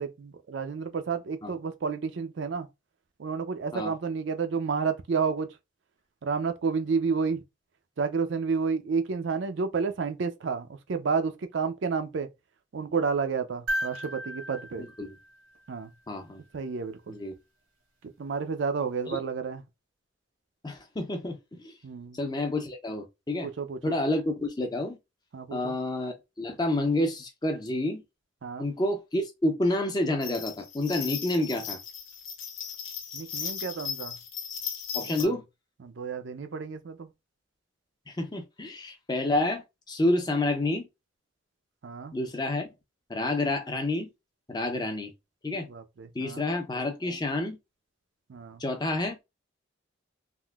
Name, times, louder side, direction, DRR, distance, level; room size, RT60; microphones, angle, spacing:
voice 1, 0.0-2.7 3.2-5.5 6.2-7.4 8.0-12.3 12.7-14.9 15.7-15.9 16.5-17.1 18.2-19.6 21.8-22.2 23.4-23.9 25.3-25.8 28.4-28.7 33.1-34.2 35.0-35.3 35.8-37.1 41.8-42.1 45.6-46.5 48.3-48.6, right 5 dB, 60° right, 0.4 m, -31 dB
sound 1, 13.7-16.0 18.0-18.1, equal, 85° right, 1.1 m, -35 dB
voice 2, 14.8-15.2 16.1-16.4 17.1-17.4 19.1-19.2 20.6-21.7 22.1-23.5 23.8-25.0 25.5-28.0 28.6-31.8 34.9-35.4 38.1-40.9 42.1-42.7 43.1-44.1 44.5-45.1 45.4-45.7 46.1-47.6 48.6-49.2, left 1 dB, 20° left, 0.5 m, -29 dB
sound 2, 30.2-35.2, left 7 dB, 75° left, 0.9 m, -37 dB
3.6 x 2.5 x 2.3 m
head